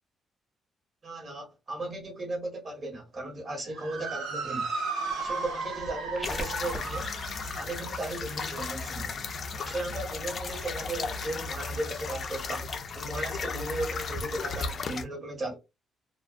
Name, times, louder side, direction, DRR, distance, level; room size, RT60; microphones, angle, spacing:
voice 1, 1.0-4.7 5.1-7.1 7.6-9.2 9.6-15.6, right 2 dB, 40° right, 1.3 m, -36 dB
Motor vehicle (road) / Siren, 3.6-12.2, right 4 dB, 80° right, 0.7 m, -38 dB
sound 1, 5.0-6.9, left 1 dB, 15° left, 0.7 m, -41 dB
sound 2, 6.2-15.0, left 4 dB, 50° left, 0.4 m, -35 dB
2.4 x 2.1 x 2.5 m
cardioid pair, 90°, 0 cm